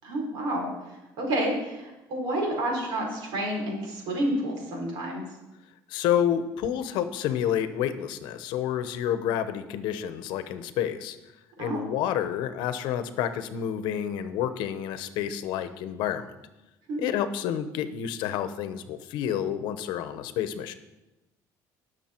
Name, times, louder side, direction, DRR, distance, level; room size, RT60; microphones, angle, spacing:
voice 1, 0.0-5.2 11.6-11.8 16.9-17.1, right 1 dB, 70° right, -1 dB, 4.6 m, -30 dB
voice 2, 5.9-11.2 11.6-16.3 17.0-20.7, left 10 dB, 80° left, 11 dB, 0.9 m, -29 dB
19.0 x 6.6 x 4.5 m, 1.0 s
cardioid pair, 165°, 8 cm